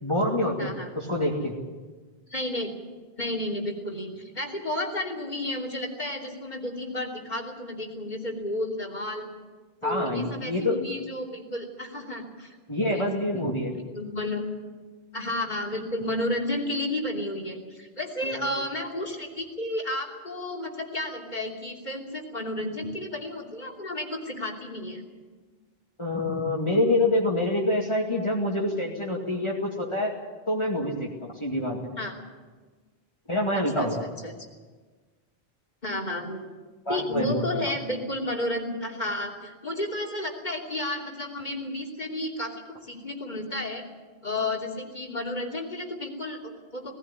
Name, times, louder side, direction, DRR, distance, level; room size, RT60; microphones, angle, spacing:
voice 1, 0.0-1.6 9.8-10.8 12.7-13.8 18.2-18.5 26.0-30.1 30.5-31.8 33.3-34.0 36.9-37.4, left 1 dB, 30° left, -3 dB, 2.3 m, -26 dB
voice 2, 0.6-0.9 2.3-2.7 3.2-9.3 9.8-12.6 12.9-13.2 13.9-14.4 15.1-25.0 32.0-32.1 33.5-34.5 35.8-36.4 36.9-43.8 44.2-46.9, left 1 dB, 45° left, 0 dB, 3.2 m, -32 dB
19.5 x 15.5 x 9.9 m, 1.4 s
omnidirectional pair, 1.0 m